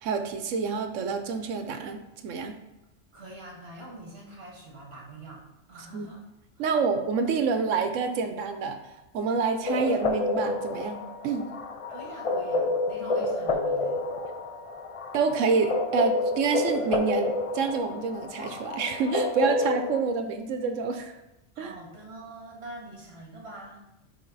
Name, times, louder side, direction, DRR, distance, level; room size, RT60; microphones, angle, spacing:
voice 1, 0.0-2.6 5.9-6.1 6.6-8.8 9.1-11.5 15.1-21.1 21.6-21.7, right 5 dB, 90° right, 7 dB, 1.1 m, -28 dB
voice 2, 3.1-6.2 6.6-6.7 11.9-14.1 21.5-23.8, right 2 dB, 55° right, -2 dB, 2.0 m, -44 dB
sound 1, 9.7-20.0, left 2 dB, 50° left, 0.4 m, -29 dB
8.7 x 3.4 x 4.0 m, 0.98 s
omnidirectional pair, 1.2 m